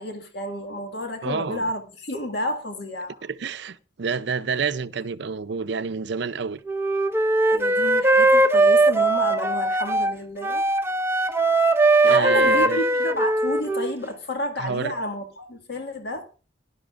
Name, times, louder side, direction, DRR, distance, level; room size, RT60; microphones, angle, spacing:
voice 1, 0.0-3.3 7.5-10.6 12.0-16.3, left 1 dB, 60° left, 1.9 m, -31 dB
voice 2, 1.2-1.7 3.2-6.6 12.0-12.8 14.6-14.9, right 5 dB, 65° right, 0.5 m, -28 dB
Wind instrument woodwind instrument, 6.7-10.1 10.4-14.0, right 2 dB, 15° right, 0.6 m, -20 dB
19.0 x 11.0 x 2.5 m
head